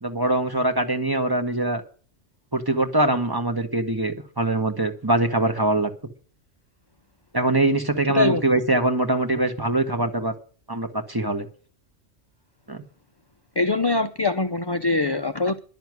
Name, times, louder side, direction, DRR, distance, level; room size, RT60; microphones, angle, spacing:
voice 1, 0.0-1.8 2.5-5.9 7.3-10.3 10.7-11.5 12.7-12.8, right 2 dB, 20° right, 1.6 m, -23 dB
voice 2, 13.6-15.6, left 3 dB, 25° left, 0.6 m, -23 dB
11.0 x 7.0 x 9.6 m
omnidirectional pair, 1.2 m